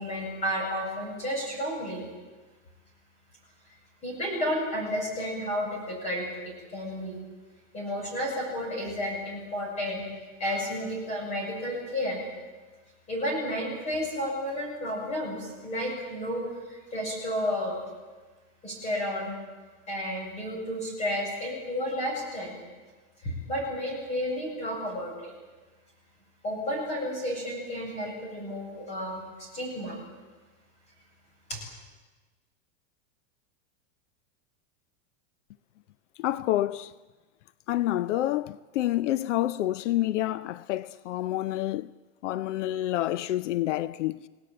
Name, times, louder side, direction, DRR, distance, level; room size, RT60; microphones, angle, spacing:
voice 1, 0.0-2.0 4.0-7.2 7.7-10.1 10.4-12.2 13.1-17.8 18.6-19.3 19.9-22.6 23.2-25.3 26.4-30.0 31.5-31.6, equal, 20° left, 8.0 m, -32 dB
voice 2, 36.2-36.9 37.7-41.9 42.2-44.3, left 14 dB, 75° left, 0.7 m, -28 dB
29.5 x 18.0 x 8.9 m
supercardioid pair, 175°, 36 cm